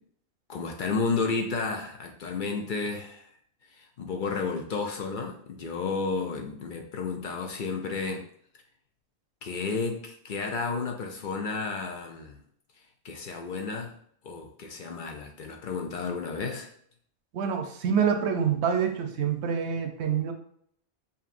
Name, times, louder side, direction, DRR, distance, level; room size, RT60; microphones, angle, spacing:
voice 1, 0.5-3.3 3.7-8.3 9.4-12.4 13.0-13.9 14.2-16.7, left 4 dB, 60° left, 2 dB, 0.6 m, -32 dB
voice 2, 17.3-20.3, right 7 dB, 80° right, 6 dB, 0.9 m, -26 dB
5.2 x 2.7 x 2.5 m, 0.63 s
omnidirectional pair, 1.1 m